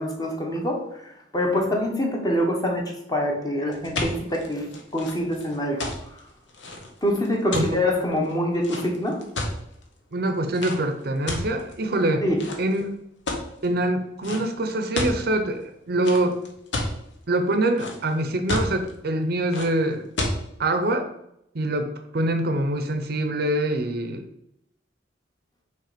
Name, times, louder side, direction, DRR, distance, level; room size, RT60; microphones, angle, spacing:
voice 1, 0.0-5.8 7.0-9.2 12.2-12.4, left 1 dB, 20° left, 0 dB, 1.2 m, -25 dB
sound 1, 3.7-9.8 10.5-10.8 11.3-12.0 12.4-12.8 13.3-13.7 14.2-14.4 14.7-15.2 16.0-16.9 17.4-18.1 18.5-18.9 19.5-19.7 20.2-20.4, left 2 dB, 75° left, 1.1 m, -29 dB
voice 2, 10.1-12.3 12.6-12.8 13.6-16.4 17.3-20.0 20.6-21.1 21.5-24.2, right 1 dB, 55° right, 6 dB, 0.7 m, -24 dB
5.8 x 3.1 x 5.0 m, 0.77 s
head